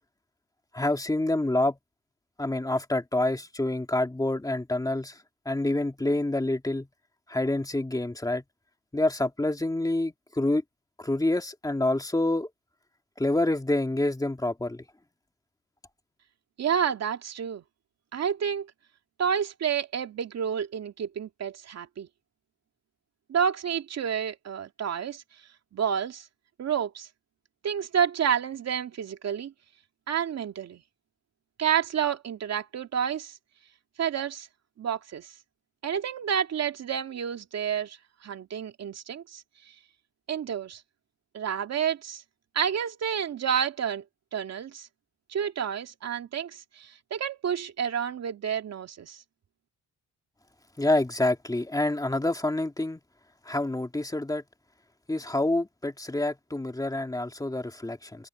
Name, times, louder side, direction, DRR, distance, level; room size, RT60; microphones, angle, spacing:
voice 1, 0.7-1.8 2.4-5.2 5.4-6.9 7.3-8.4 8.9-10.6 11.0-12.5 13.2-14.8 50.8-53.0 53.4-54.4 55.1-58.3, left 2 dB, 10° left, 2.7 m, -27 dB
voice 2, 16.6-17.6 18.1-18.7 19.2-22.1 23.3-25.2 25.7-26.3 26.6-27.1 27.6-29.5 30.1-30.8 31.6-33.4 34.0-34.5 34.8-35.3 35.8-39.4 40.3-40.8 41.3-42.2 42.5-44.0 44.3-44.9 45.3-49.2, right 8 dB, 60° right, 2.5 m, -29 dB
cardioid pair, 90°, 30 cm